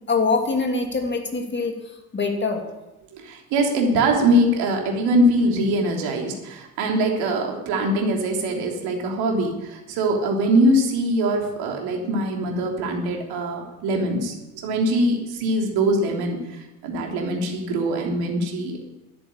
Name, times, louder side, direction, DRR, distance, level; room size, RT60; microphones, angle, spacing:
voice 1, 0.1-2.7, left 4 dB, 25° left, 3 dB, 2.8 m, -24 dB
voice 2, 3.1-14.3 14.6-18.8, right 1 dB, 60° right, 1 dB, 3.4 m, -22 dB
12.0 x 10.5 x 8.6 m, 1.0 s
figure-of-eight pair, 60°, 43 cm